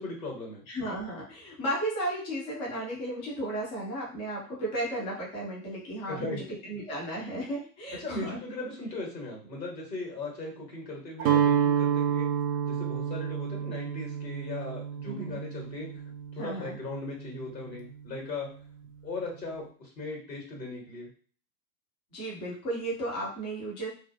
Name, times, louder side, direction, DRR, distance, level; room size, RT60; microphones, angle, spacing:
voice 1, 0.0-0.6 6.1-6.4 8.0-12.3 12.6-15.9 16.3-18.5 19.0-21.1, left 2 dB, 90° left, -1 dB, 1.2 m, -38 dB
voice 2, 0.7-8.4 15.1-15.4 16.4-16.8 22.1-23.9, right 1 dB, 10° left, -5 dB, 0.3 m, -34 dB
Guitar, 11.2-17.2, right 8 dB, 60° right, 0.6 m, -29 dB
2.4 x 2.1 x 2.5 m, 0.43 s
figure-of-eight pair, 95°, 50 cm